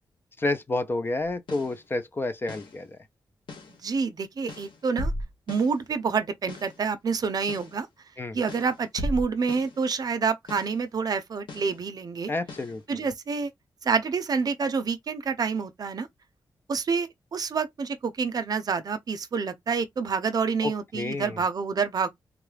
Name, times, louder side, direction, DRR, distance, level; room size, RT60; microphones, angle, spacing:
voice 1, 0.4-3.0 8.2-8.4 12.3-13.0 20.6-21.4, left 2 dB, 25° left, 0.5 m, -30 dB
sound 1, 1.3-1.8 2.5-2.8 3.5-3.8 4.5-5.8 6.5-6.8 7.5-7.8 8.5-9.8 10.5-10.8 11.5-11.8 12.5-12.8, left 1 dB, 75° left, 1.0 m, -36 dB
voice 2, 3.8-5.1 5.5-7.9 8.3-12.3 12.9-13.5 13.8-16.1 16.7-22.1, right 5 dB, 50° right, 0.6 m, -28 dB
3.6 x 2.3 x 3.2 m
wide cardioid pair, 135°, 8 cm